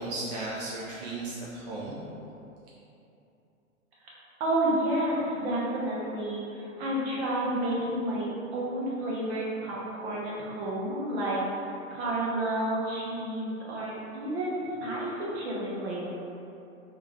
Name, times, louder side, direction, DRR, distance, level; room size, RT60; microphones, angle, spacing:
voice 1, 0.0-2.1, right 2 dB, 35° right, -6 dB, 0.4 m, -35 dB
voice 2, 4.4-11.4 11.9-16.0, right 1 dB, 50° right, -5 dB, 1.0 m, -30 dB
3.5 x 2.6 x 3.0 m, 2.8 s
figure-of-eight pair, 110°, 41 cm